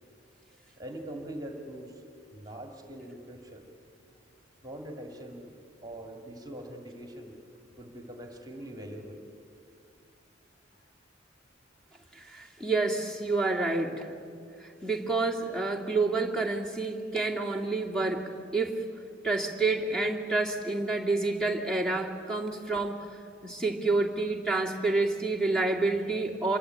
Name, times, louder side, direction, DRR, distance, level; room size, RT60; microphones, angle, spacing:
voice 1, 0.7-2.0 2.3-3.7 4.6-5.5 5.8-7.4 7.8-9.2, right 1 dB, 20° right, 4 dB, 2.1 m, -42 dB
voice 2, 12.1-14.1 14.6-18.8 19.2-23.1 23.4-26.6, right 3 dB, 5° left, 2 dB, 2.5 m, -29 dB
27.0 x 23.5 x 8.9 m, 2.4 s
head